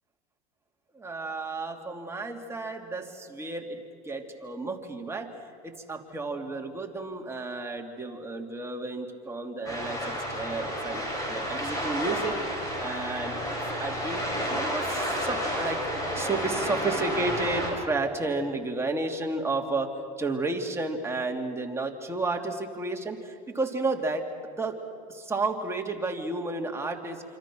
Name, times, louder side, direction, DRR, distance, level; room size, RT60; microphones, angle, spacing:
voice 1, 0.9-5.3 5.6-13.4 13.8-15.9 16.1-24.8 25.1-27.2, right 3 dB, 15° right, 2 dB, 2.7 m, -32 dB
sound 1, 9.6-17.7, equal, 15° left, 7.9 m, -31 dB
26.5 x 26.0 x 6.2 m, 2.2 s
supercardioid pair, 110°, 20 cm